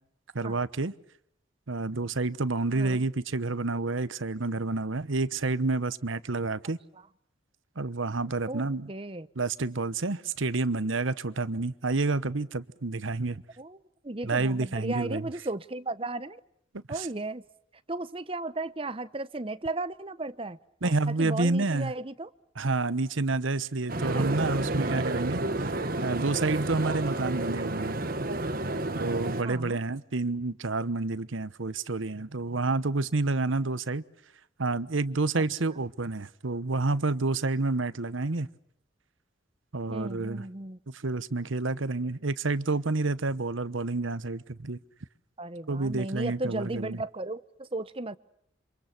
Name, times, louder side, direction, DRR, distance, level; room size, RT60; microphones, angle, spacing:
voice 1, 0.3-0.9 1.7-6.8 7.8-8.9 9.4-13.4 14.2-15.3 16.7-17.1 20.8-21.9 22.6-25.7 26.0-28.0 28.9-34.0 34.6-38.5 39.7-40.5 40.9-44.8 45.7-47.0, right 3 dB, 80° right, 1.1 m, -29 dB
voice 2, 2.7-3.1 8.5-9.3 13.6-13.8 14.0-16.4 16.9-17.4 17.9-22.3 24.1-24.4 29.4-29.8 35.4-35.5 39.9-40.8 45.4-48.2, right 2 dB, 30° right, 0.9 m, -35 dB
sound 1, 23.9-29.4, right 2 dB, 45° right, 1.5 m, -30 dB
28.0 x 26.0 x 6.0 m
head